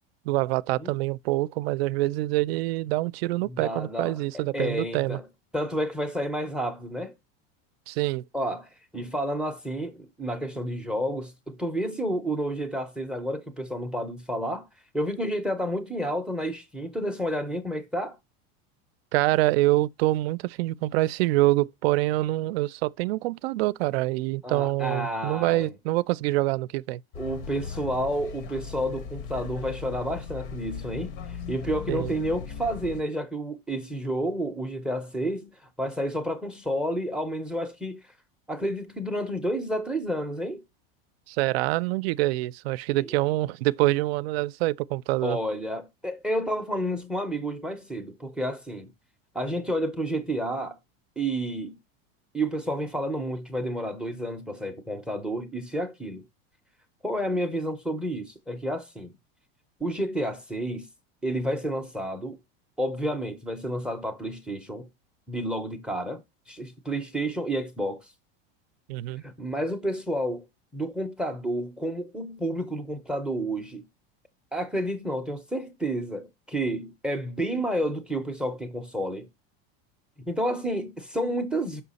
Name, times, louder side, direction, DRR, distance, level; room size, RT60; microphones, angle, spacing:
voice 1, 0.3-5.2 7.9-8.2 19.1-27.0 31.9-32.1 41.3-45.4 68.9-69.2, right 18 dB, 75° right, 0.5 m, -25 dB
voice 2, 3.5-5.2 5.5-7.1 8.3-14.7 14.9-18.2 24.4-25.7 27.2-35.5 35.8-38.0 38.5-40.6 42.9-43.2 45.2-48.9 49.3-50.8 51.2-51.8 52.3-56.2 57.0-59.1 59.8-60.9 61.2-62.4 62.8-64.9 65.3-68.1 69.2-70.4 70.7-73.8 74.5-79.3 80.3-81.8, right 1 dB, 5° right, 0.5 m, -30 dB
sound 1, 27.1-33.0, left 6 dB, 60° left, 0.8 m, -38 dB
5.7 x 5.6 x 4.1 m
supercardioid pair, 165°, 30 cm